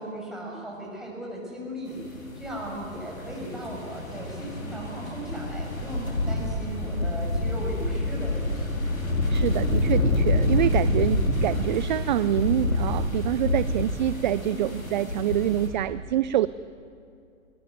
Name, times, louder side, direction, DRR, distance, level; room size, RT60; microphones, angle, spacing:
voice 1, 0.0-2.0 2.4-8.9, right 1 dB, ahead, -3 dB, 7.1 m, -37 dB
sound 1, 2.0-15.7, left 2 dB, 85° left, 4.6 m, -27 dB
voice 2, 9.3-16.5, right 13 dB, 35° right, 16 dB, 0.5 m, -26 dB
21.5 x 21.5 x 9.5 m, 2.5 s
figure-of-eight pair, 115°, 40 cm